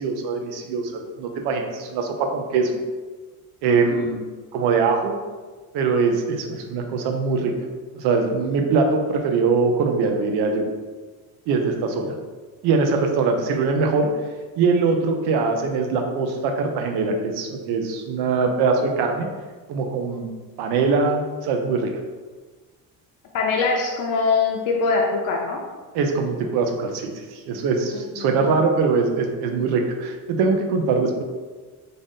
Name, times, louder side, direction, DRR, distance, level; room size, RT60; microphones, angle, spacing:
voice 1, 0.0-2.8 3.6-5.2 5.7-7.5 8.0-10.7 11.5-12.1 12.6-14.1 14.6-19.3 19.7-20.3 20.6-21.9 25.9-31.2, right 4 dB, 85° right, 3 dB, 0.6 m, -22 dB
voice 2, 3.7-4.0 23.3-25.6 27.9-28.2, left 4 dB, 55° left, -1 dB, 0.6 m, -23 dB
3.9 x 2.5 x 3.6 m, 1.3 s
cardioid pair, 170°, 39 cm